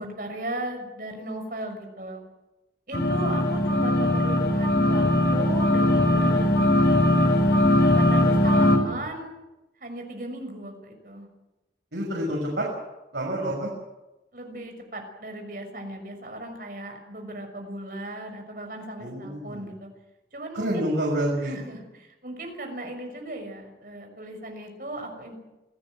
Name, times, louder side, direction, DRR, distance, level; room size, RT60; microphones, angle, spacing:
voice 1, 0.0-2.2 2.9-6.8 7.8-9.4 9.8-11.3 14.3-19.9 20.3-20.9 21.4-25.4, right 1 dB, 50° right, 4 dB, 5.9 m, -37 dB
sound 1, 2.9-8.8, left 1 dB, 65° left, 5.2 m, -20 dB
voice 2, 11.9-12.7 13.1-13.7 19.0-19.7 20.5-21.5, right 1 dB, 80° right, -2 dB, 6.5 m, -28 dB
27.5 x 17.0 x 7.9 m, 1.0 s
head